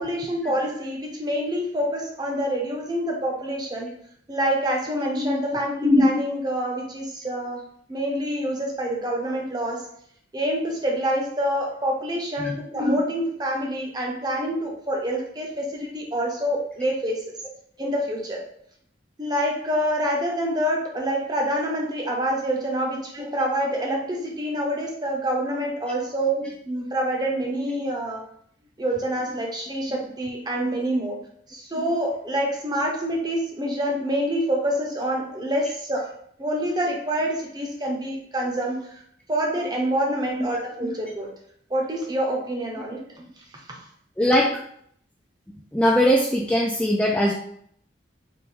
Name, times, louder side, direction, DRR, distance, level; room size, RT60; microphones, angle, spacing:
voice 1, 0.0-3.9 4.3-7.6 7.9-9.9 10.3-17.3 17.8-18.4 19.2-28.2 28.8-31.2 31.5-36.1 36.4-38.8 39.3-41.3 41.7-43.3 43.7-43.8, equal, 20° right, -1 dB, 0.7 m, -26 dB
voice 2, 44.2-44.6 45.7-47.3, equal, 5° left, -3 dB, 0.3 m, -20 dB
4.1 x 2.6 x 3.6 m, 0.66 s
head